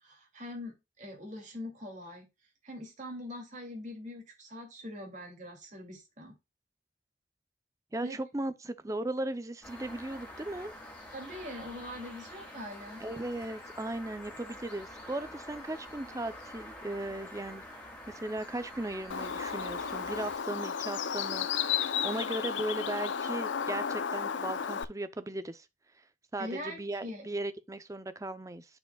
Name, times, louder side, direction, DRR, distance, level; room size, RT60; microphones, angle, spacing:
voice 1, 0.0-2.3 2.6-6.4 8.0-8.2 11.1-13.0 26.4-27.3, left 1 dB, 40° right, 2.5 m, -43 dB
voice 2, 7.9-10.7 13.0-17.6 18.1-25.7 26.3-28.7, right 1 dB, 20° right, 0.5 m, -37 dB
sound 1, 9.6-20.4, left 1 dB, 10° left, 2.2 m, -47 dB
Bird, 19.1-24.8, left 7 dB, 85° left, 0.6 m, -33 dB
10.5 x 4.7 x 2.3 m
head